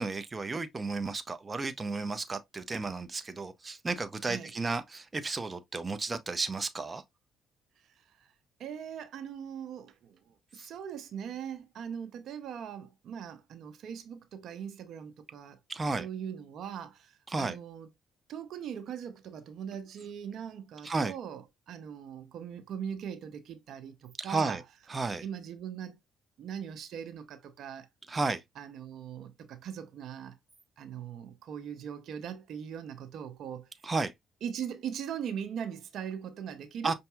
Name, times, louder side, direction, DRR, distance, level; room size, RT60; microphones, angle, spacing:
voice 1, 0.0-7.0 15.7-16.1 17.3-17.6 20.8-21.1 24.2-24.6 24.9-25.2 28.1-28.4 33.8-34.1 36.8-36.9, right 3 dB, 30° right, 0.5 m, -33 dB
voice 2, 8.6-15.6 16.0-17.9 18.3-24.6 25.2-26.0 26.4-27.9 28.6-30.4 30.8-33.7 34.4-36.9, right 8 dB, 70° right, 0.6 m, -40 dB
5.5 x 2.7 x 2.3 m
supercardioid pair, 70°, 0 cm